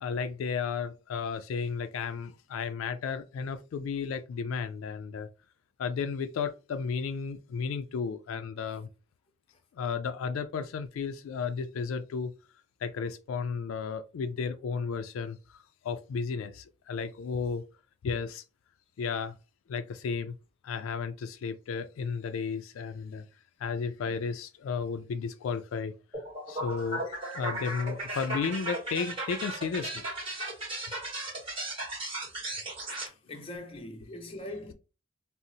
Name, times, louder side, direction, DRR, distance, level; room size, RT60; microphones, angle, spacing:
voice 1, 0.0-5.3 5.8-8.9 9.8-12.3 12.8-15.4 15.8-17.6 18.0-18.4 19.0-19.4 19.7-20.4 20.6-23.3 23.6-25.9 26.5-30.1, left 5 dB, 85° left, 0.3 m, -33 dB
sound 1, 26.1-33.1, right 1 dB, 25° right, 1.0 m, -36 dB
voice 2, 33.3-34.7, left 1 dB, 25° left, 0.6 m, -41 dB
3.8 x 2.0 x 2.6 m
head